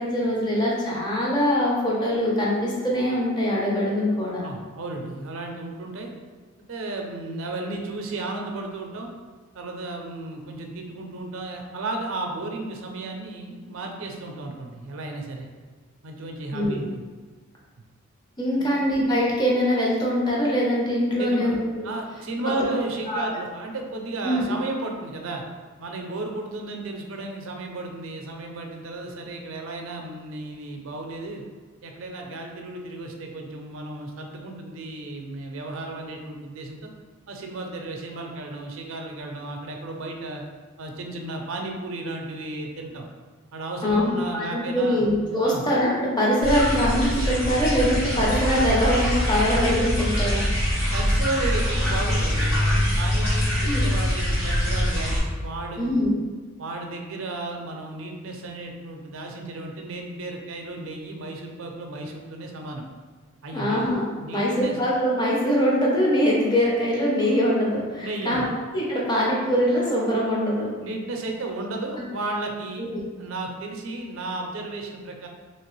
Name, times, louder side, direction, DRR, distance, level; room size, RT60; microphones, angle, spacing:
voice 1, 0.0-4.4 16.5-16.8 18.4-21.9 23.1-23.2 24.2-24.4 43.8-50.4 53.6-53.8 55.8-56.1 63.5-68.4 68.7-70.7 72.8-73.0, equal, 20° left, -4 dB, 0.6 m, -23 dB
voice 2, 4.4-6.1 6.7-9.1 9.5-15.5 16.0-17.0 18.5-18.7 21.2-21.5 21.8-25.4 25.8-31.4 31.8-36.9 37.3-40.4 40.8-43.1 43.5-45.0 45.4-45.6 50.9-56.0 56.6-62.8 63.4-63.9 64.2-64.8 68.0-68.5 70.8-75.3, right 2 dB, 65° right, 2 dB, 0.5 m, -34 dB
sound 1, 46.4-55.2, equal, 60° left, 1.4 m, -23 dB
3.2 x 2.9 x 3.1 m, 1.4 s
head